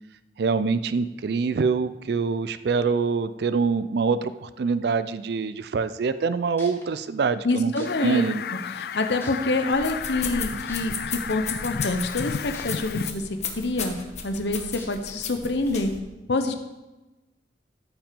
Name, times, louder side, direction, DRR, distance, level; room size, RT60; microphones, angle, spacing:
voice 1, 0.4-7.7 8.0-8.4, right 5 dB, 65° right, 14 dB, 0.4 m, -25 dB
sound 1, 6.6-6.8 7.8-7.9 8.6-8.7 9.2-9.6 10.7-10.8 12.5-12.6 13.2-13.3 14.8-14.9 15.6-15.7, left 2 dB, 15° left, 1.6 m, -43 dB
voice 2, 7.4-8.2 8.7-13.3 13.5-14.0 14.2-15.9 16.3-16.6, left 2 dB, 75° left, 7 dB, 0.8 m, -26 dB
Fowl, 7.8-13.1, left 6 dB, 60° left, 0.4 m, -33 dB
sound 2, 9.7-16.0, left 6 dB, 40° left, 1.2 m, -35 dB
14.0 x 5.9 x 5.2 m, 1.1 s
head